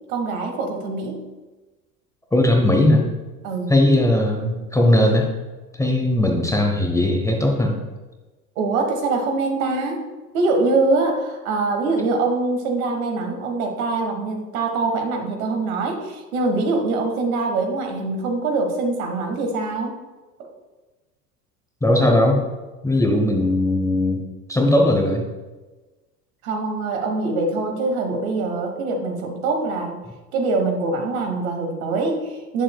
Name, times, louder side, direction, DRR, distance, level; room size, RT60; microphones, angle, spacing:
voice 1, 0.1-1.3 3.4-3.7 8.5-10.0 10.3-19.9 20.4-20.5 26.4-30.0 30.3-32.6, right 3 dB, 60° right, 3 dB, 1.5 m, -23 dB
voice 2, 2.3-3.0 3.7-5.3 5.8-7.8 21.8-22.4 22.8-24.2 24.5-25.2, left 1 dB, 5° left, 1 dB, 0.9 m, -18 dB
8.8 x 6.9 x 2.3 m, 1.2 s
figure-of-eight pair, 75°, 48 cm